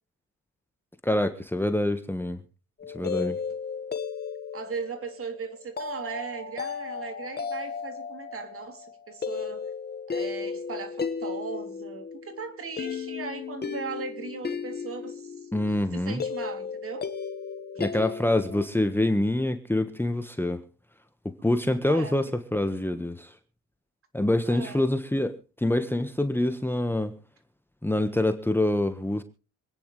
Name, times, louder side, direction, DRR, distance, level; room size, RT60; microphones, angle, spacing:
voice 1, 1.0-2.4 2.9-3.4 15.5-16.2 17.8-20.6 21.2-23.3 24.1-27.2 27.8-29.2, left 1 dB, 5° left, 8 dB, 1.4 m, -26 dB
sound 1, 2.8-18.7, left 5 dB, 35° left, 1.6 m, -35 dB
voice 2, 4.5-9.7 10.1-15.5 15.9-17.1 21.8-22.2 24.5-24.9, right 5 dB, 45° right, 7 dB, 3.2 m, -38 dB
26.5 x 9.9 x 3.3 m, 0.34 s
cardioid pair, 90°, 30 cm